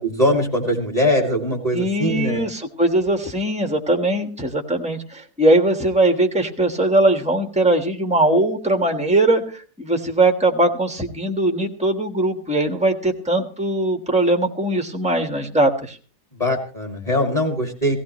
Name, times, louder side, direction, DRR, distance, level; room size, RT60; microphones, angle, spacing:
voice 1, 0.0-2.4 16.3-18.0, left 1 dB, 20° left, 3 dB, 2.2 m, -21 dB
voice 2, 1.7-16.0, right 1 dB, 5° right, 4 dB, 1.2 m, -20 dB
17.5 x 16.0 x 3.1 m, 0.37 s
omnidirectional pair, 1.9 m